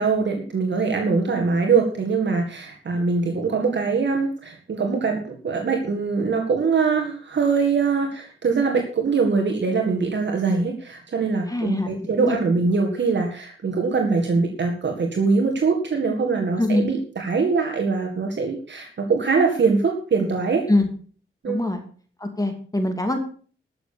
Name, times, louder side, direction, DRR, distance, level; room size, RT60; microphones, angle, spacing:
voice 1, 0.0-20.6 21.4-21.6, right 4 dB, 60° right, 3 dB, 1.9 m, -22 dB
voice 2, 11.5-12.4 16.6-16.9 20.7-20.9 21.5-21.8 22.2-23.2, left 1 dB, 15° left, 5 dB, 2.6 m, -23 dB
13.0 x 6.9 x 6.8 m, 0.43 s
cardioid pair, 75°, 20 cm